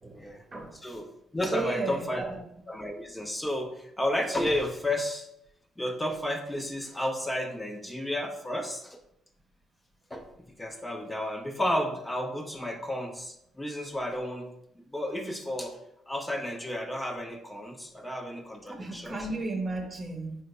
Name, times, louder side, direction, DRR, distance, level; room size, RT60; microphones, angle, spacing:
voice 1, 0.7-1.1 1.3-2.2 2.7-5.3 5.8-9.0 10.1-10.3 10.6-14.5 14.9-15.8 16.1-19.2, left 1 dB, 15° left, 3 dB, 0.5 m, -32 dB
voice 2, 1.5-2.4 18.7-20.4, right 2 dB, 35° right, 3 dB, 0.8 m, -34 dB
3.8 x 2.1 x 4.2 m, 0.78 s
supercardioid pair, 65°, 0 cm